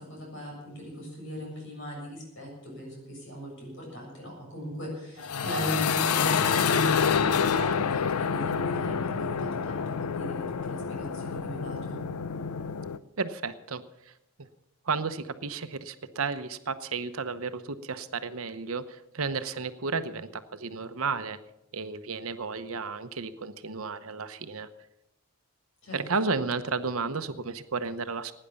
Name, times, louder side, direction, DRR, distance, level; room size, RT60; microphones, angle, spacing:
voice 1, 0.0-12.0 25.8-26.3, equal, 55° left, -1 dB, 7.3 m, -38 dB
sound 1, 5.2-13.0, left 6 dB, 85° left, 0.6 m, -27 dB
voice 2, 13.2-14.1 14.4-14.5 14.9-21.4 21.7-24.7 25.9-28.3, right 4 dB, 70° right, 11 dB, 0.9 m, -33 dB
17.0 x 10.0 x 7.0 m, 0.86 s
head